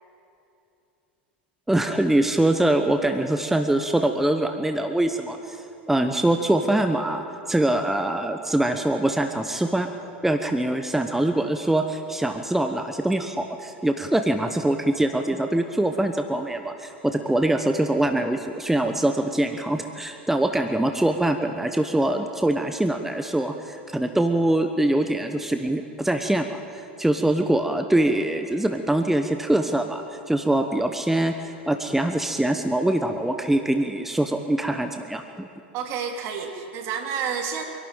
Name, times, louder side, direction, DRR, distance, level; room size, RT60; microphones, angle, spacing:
voice 1, 1.7-9.9 10.2-26.6 27.0-35.5, right 1 dB, 5° right, 6 dB, 1.1 m, -23 dB
voice 2, 35.7-37.6, right 7 dB, 55° right, 4 dB, 3.0 m, -29 dB
25.0 x 12.0 x 8.9 m, 2.7 s
hypercardioid pair, 100°, 6 cm